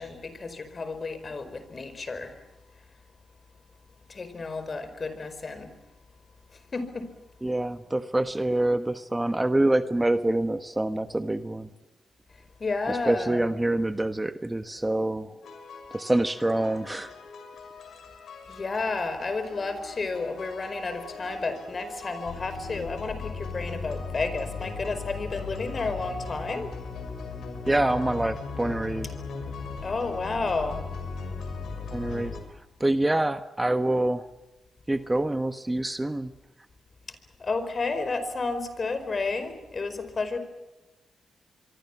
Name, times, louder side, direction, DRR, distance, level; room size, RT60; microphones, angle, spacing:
voice 1, 0.0-2.4 4.1-5.7 6.7-7.1 12.6-13.4 18.5-26.7 29.8-30.8 37.4-40.4, left 3 dB, 40° left, 11 dB, 4.9 m, -31 dB
voice 2, 7.4-11.7 12.9-15.3 15.9-17.1 27.7-29.1 31.9-32.3 32.8-34.3 34.9-36.3, right 1 dB, 15° right, 9 dB, 1.3 m, -26 dB
sound 1, 15.4-32.4, left 4 dB, 80° left, 6.2 m, -38 dB
25.5 x 24.0 x 7.4 m, 1.1 s
cardioid pair, 70°, 0 cm